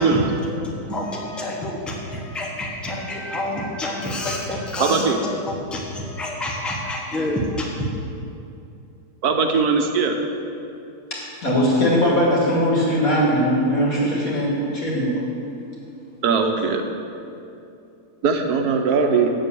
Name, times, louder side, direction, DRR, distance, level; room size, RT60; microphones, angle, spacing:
voice 1, 0.0-7.9, left 1 dB, ahead, -1 dB, 1.0 m, -28 dB
voice 2, 4.8-5.2 9.2-10.2 16.2-16.8 18.2-19.3, right 5 dB, 80° right, 4 dB, 1.4 m, -20 dB
voice 3, 11.1-15.3, equal, 60° left, -5 dB, 2.9 m, -20 dB
8.3 x 7.6 x 6.9 m, 2.7 s
omnidirectional pair, 1.6 m